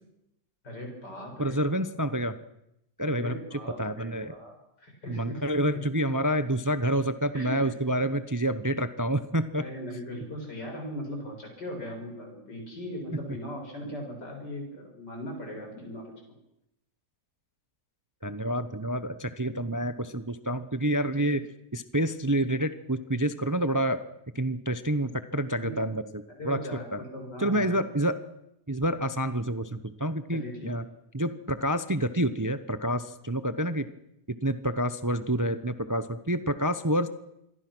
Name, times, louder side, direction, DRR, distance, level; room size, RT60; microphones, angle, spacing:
voice 1, 0.6-1.8 3.0-5.4 7.3-7.7 9.6-16.1 25.6-25.8 26.4-27.8 30.3-30.7, equal, 90° left, 1 dB, 7.6 m, -39 dB
voice 2, 1.4-2.4 3.0-3.3 3.8-4.3 5.1-9.6 13.1-13.4 18.2-24.0 24.3-26.6 26.9-27.0 27.4-28.1 28.7-30.8 31.1-33.9 34.4-37.1, right 1 dB, 20° right, 11 dB, 0.6 m, -28 dB
26.5 x 22.5 x 6.2 m, 0.84 s
omnidirectional pair, 1.8 m